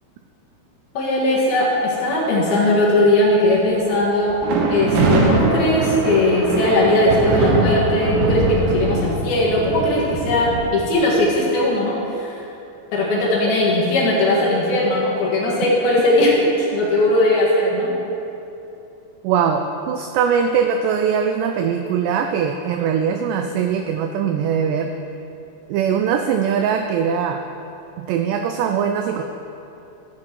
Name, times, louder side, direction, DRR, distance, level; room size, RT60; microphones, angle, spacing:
voice 1, 0.9-4.4 4.7-12.4 12.9-17.9, left 1 dB, 60° left, -5 dB, 3.2 m, -18 dB
sound 1, 4.3-10.7, right 2 dB, 75° right, 3.4 m, -22 dB
voice 2, 19.2-24.9 25.7-27.4 28.0-29.2, right 7 dB, 90° right, 6 dB, 2.4 m, -21 dB
13.5 x 8.6 x 4.5 m, 2.8 s
omnidirectional pair, 5.4 m